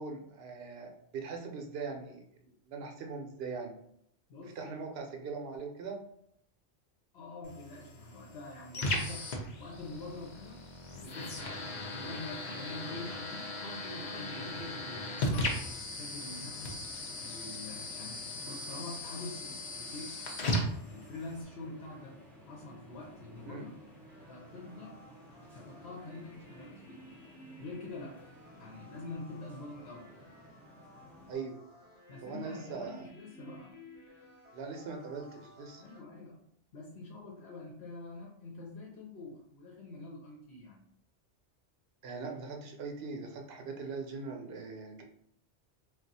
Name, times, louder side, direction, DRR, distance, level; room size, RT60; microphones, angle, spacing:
voice 1, 0.0-3.7 4.4-6.0 23.4-23.7 31.3-31.6 32.2-33.0 34.5-35.8 42.0-45.0, right 4 dB, 65° right, 3 dB, 0.8 m, -41 dB
voice 2, 4.3-4.9 7.1-9.3 9.6-13.5 13.8-16.8 17.2-22.2 22.5-23.7 24.3-25.0 25.5-27.0 27.6-28.3 28.6-30.1 32.1-33.8 35.8-36.5 36.7-40.8, left 2 dB, 70° left, -2 dB, 0.9 m, -46 dB
Radio Noises & Blips, 7.4-21.4, left 1 dB, 50° left, 0.6 m, -37 dB
sound 1, 14.4-31.3, equal, ahead, 0.5 m, -54 dB
sound 2, 24.1-36.0, left 1 dB, 30° left, 1.1 m, -55 dB
2.4 x 2.3 x 4.0 m, 0.68 s
omnidirectional pair, 1.1 m